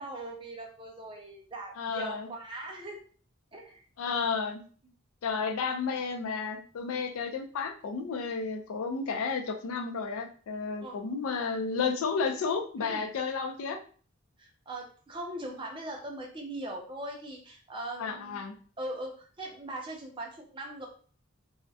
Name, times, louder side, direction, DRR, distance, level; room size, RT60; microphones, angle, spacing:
voice 1, 0.0-3.0 3.5-3.8 10.8-11.0 12.8-13.1 14.4-18.4 18.8-20.9, right 1 dB, 25° right, 0 dB, 0.5 m, -40 dB
voice 2, 1.8-2.3 4.0-4.6 5.2-13.8 18.0-18.5, left 5 dB, 90° left, 4 dB, 0.4 m, -32 dB
2.3 x 2.1 x 2.6 m, 0.42 s
head